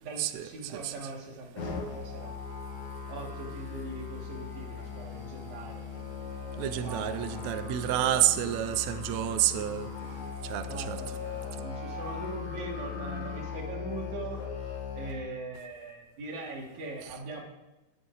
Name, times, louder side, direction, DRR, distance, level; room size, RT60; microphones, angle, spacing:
voice 1, 0.0-2.3 3.1-6.4 6.8-7.5 10.7-14.5 14.9-17.4, right 2 dB, 55° right, -1 dB, 3.1 m, -41 dB
Musical instrument, 1.6-15.1, left 6 dB, 60° left, 2.9 m, -39 dB
voice 2, 6.6-9.9 10.4-11.0, right 13 dB, 85° right, 9 dB, 1.5 m, -29 dB
17.5 x 6.9 x 3.9 m, 1.1 s
omnidirectional pair, 4.0 m